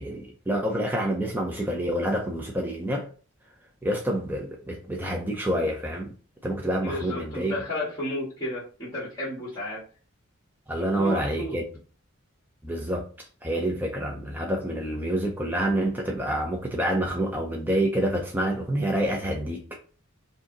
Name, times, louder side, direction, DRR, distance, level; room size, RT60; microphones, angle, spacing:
voice 1, 0.0-3.1 3.8-6.1 6.4-7.5 10.7-11.7 12.6-13.1 13.4-19.6, right 1 dB, 10° right, 0.6 m, -27 dB
voice 2, 6.8-9.8 11.0-11.6, left 1 dB, 20° left, 1.8 m, -32 dB
5.0 x 2.7 x 3.9 m
head